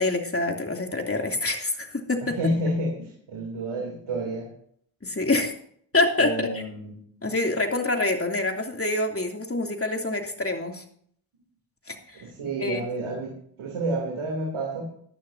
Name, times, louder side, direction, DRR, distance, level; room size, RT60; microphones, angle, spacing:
voice 1, 0.0-2.4 5.0-5.6 5.9-6.6 7.2-10.8 11.9-12.2 12.6-12.9, left 2 dB, 25° left, 3 dB, 3.0 m, -26 dB
voice 2, 2.2-4.5 6.2-7.0 12.1-14.8, right 1 dB, 75° right, 0 dB, 3.2 m, -30 dB
17.0 x 11.5 x 2.8 m, 0.62 s
supercardioid pair, 45°, 49 cm